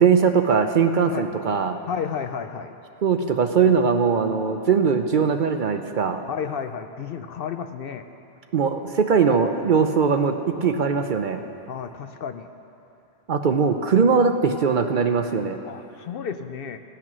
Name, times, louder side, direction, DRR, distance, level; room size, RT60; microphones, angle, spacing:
voice 1, 0.0-1.8 3.0-6.2 8.5-11.4 13.3-15.6, right 6 dB, 55° right, 7 dB, 0.7 m, -20 dB
voice 2, 1.8-2.7 6.3-8.1 11.7-12.5 15.6-16.8, left 7 dB, 65° left, 9 dB, 0.7 m, -32 dB
17.0 x 8.6 x 6.0 m, 2.8 s
omnidirectional pair, 1.1 m